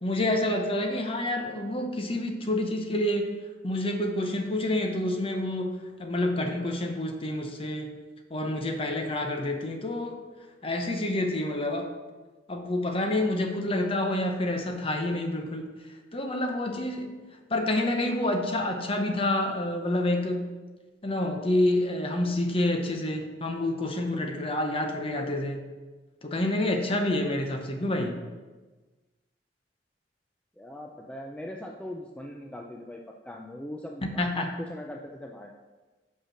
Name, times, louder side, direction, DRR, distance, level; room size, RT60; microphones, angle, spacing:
voice 1, 0.0-3.3 3.6-7.9 8.3-10.2 10.6-11.9 12.5-15.7 16.1-17.1 17.5-20.4 21.0-25.6 26.2-28.2 34.0-34.5, left 1 dB, 30° left, 4 dB, 0.8 m, -28 dB
voice 2, 30.6-35.5, left 1 dB, 5° left, 0 dB, 0.4 m, -40 dB
5.8 x 5.4 x 5.7 m, 1.3 s
head